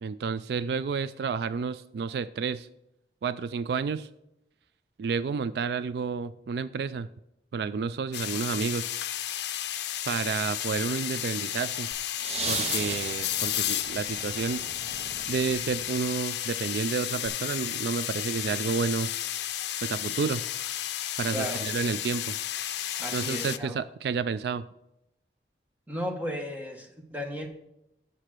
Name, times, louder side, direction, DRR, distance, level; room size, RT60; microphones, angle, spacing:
voice 1, 0.0-2.7 3.2-4.1 5.0-7.1 7.5-8.9 10.1-11.9 12.5-14.6 15.3-19.1 19.8-20.4 21.2-22.4 23.1-24.6, right 5 dB, 70° right, 15 dB, 0.3 m, -30 dB
sound 1, 8.1-23.6, left 12 dB, 80° left, 0.5 m, -32 dB
sound 2, 11.9-16.1 17.3-17.4, right 4 dB, 40° right, 0.7 m, -37 dB
voice 2, 21.3-21.6 23.0-23.8 25.9-27.5, equal, 10° right, 2 dB, 1.0 m, -35 dB
7.4 x 6.6 x 6.0 m, 0.85 s
head